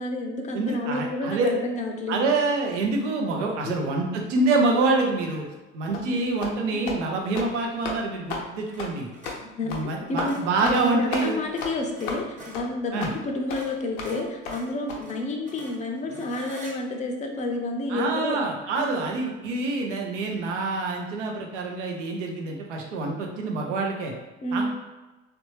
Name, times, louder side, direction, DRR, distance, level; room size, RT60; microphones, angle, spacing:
voice 1, 0.0-2.3 3.6-4.1 6.0-6.2 6.7-6.9 9.4-18.4 18.8-19.0 24.4-24.7, left 2 dB, 20° left, 3 dB, 0.5 m, -30 dB
voice 2, 0.5-1.5 2.1-5.4 5.7-9.1 9.6-11.4 12.9-13.1 17.9-24.1 24.5-24.7, right 3 dB, 75° right, 1 dB, 0.7 m, -26 dB
sound 1, 5.3-5.6 8.7-8.9 9.1-12.7 13.1-13.2 13.5-16.7, right 1 dB, 20° right, 0.9 m, -46 dB
sound 2, 5.9-6.1 6.4-6.6 6.9-7.0 7.3-7.5 7.8-8.0 8.3-8.5 8.8-8.9 9.2-9.4 9.7-9.8 10.2-10.3 10.6-10.8 11.1-11.3 11.6-11.7 12.1-12.2 12.5-12.7 13.0-13.2 13.5-13.6 14.0-14.1 14.5-14.6 14.9-15.0, left 4 dB, 75° left, 0.6 m, -32 dB
3.2 x 2.6 x 3.1 m, 1.1 s
figure-of-eight pair, 60°, 36 cm